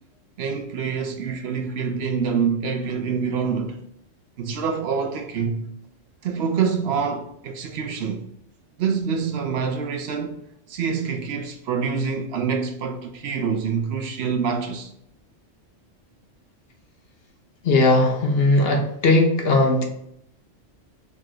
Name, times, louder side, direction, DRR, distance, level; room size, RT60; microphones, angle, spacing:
voice 1, 0.4-3.8 4.4-5.7 6.2-8.2 8.8-10.4 10.7-14.9, right 6 dB, 65° right, 0.8 m, -26 dB
voice 2, 17.6-19.8, left 2 dB, 60° left, 0.9 m, -18 dB
4.1 x 2.5 x 4.5 m
omnidirectional pair, 1.3 m